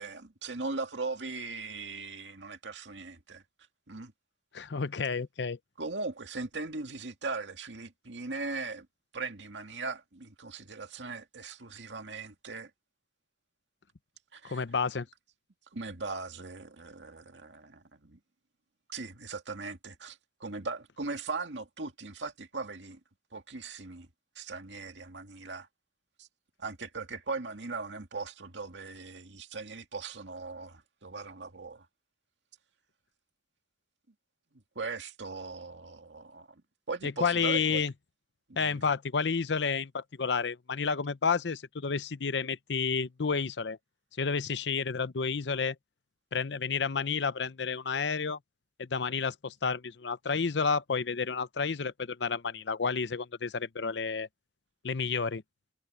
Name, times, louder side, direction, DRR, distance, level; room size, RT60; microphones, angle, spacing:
voice 1, 0.0-3.4 3.9-4.1 5.8-8.9 9.1-12.7 14.3-14.6 15.7-18.2 18.9-23.0 23.3-24.1 24.4-25.7 26.2-26.3 26.6-31.9 34.8-36.5 36.9-37.8 38.6-38.9, right 3 dB, 90° right, 2.2 m, -39 dB
voice 2, 4.5-5.6 14.4-15.1 37.0-37.9 38.6-43.8 44.2-45.8 46.3-48.4 48.8-54.3 54.8-55.4, left 5 dB, 75° left, 0.7 m, -30 dB
head